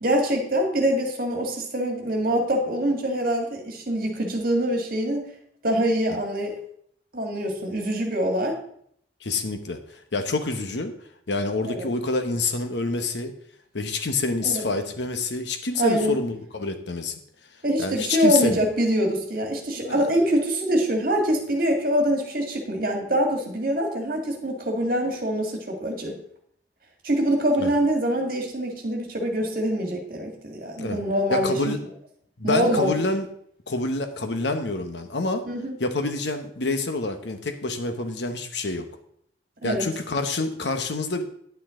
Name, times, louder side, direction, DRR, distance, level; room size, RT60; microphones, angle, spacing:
voice 1, 0.0-5.2 5.6-6.5 7.1-8.6 11.7-11.9 14.4-14.7 15.8-16.2 17.6-26.2 27.0-31.6 32.4-32.9 35.5-35.8 39.6-39.9, equal, 50° right, 2 dB, 1.9 m, -24 dB
voice 2, 9.2-10.9 11.3-13.3 13.7-17.2 17.8-18.6 19.8-20.1 27.6-27.7 30.8-31.0 31.3-31.8 32.4-33.3 33.7-35.5 35.8-38.9 39.6-41.2, left 3 dB, 75° left, 7 dB, 1.1 m, -27 dB
10.0 x 8.9 x 3.8 m, 0.67 s
head